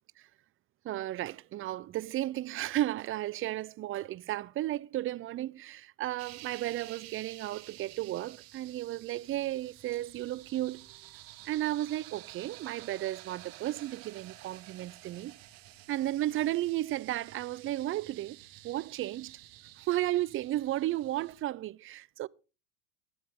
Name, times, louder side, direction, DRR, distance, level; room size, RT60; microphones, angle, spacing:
voice 1, 0.8-10.9 11.5-15.3 15.9-18.4 18.6-19.4 19.8-22.3, right 14 dB, 30° right, 0.5 m, -34 dB
sound 1, 6.2-21.4, right 16 dB, 50° right, 1.5 m, -51 dB
15.5 x 12.0 x 3.7 m
hypercardioid pair, 90°, 43 cm